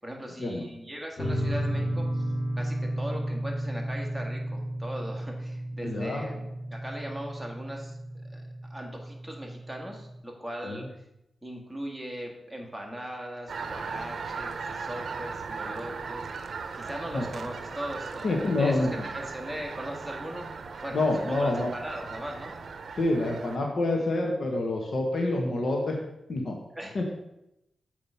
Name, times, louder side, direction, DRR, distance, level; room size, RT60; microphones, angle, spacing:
voice 1, 0.0-2.3 2.6-8.4 8.7-10.9 11.4-16.4 16.7-20.5 20.8-21.0 21.3-22.5 26.7-27.1, equal, ahead, -1 dB, 1.7 m, -39 dB
sound 1, 1.2-10.1, right 1 dB, 35° left, 2.4 m, -33 dB
voice 2, 5.8-6.2 10.6-10.8 17.1-17.3 18.2-18.9 20.9-21.7 23.0-26.0 26.3-26.6 26.9-27.0, left 2 dB, 65° left, 1 dB, 1.2 m, -27 dB
sound 2, 13.5-23.6, right 5 dB, 70° right, 0.7 m, -38 dB
7.4 x 4.9 x 5.6 m, 0.84 s
wide cardioid pair, 110°, 0 cm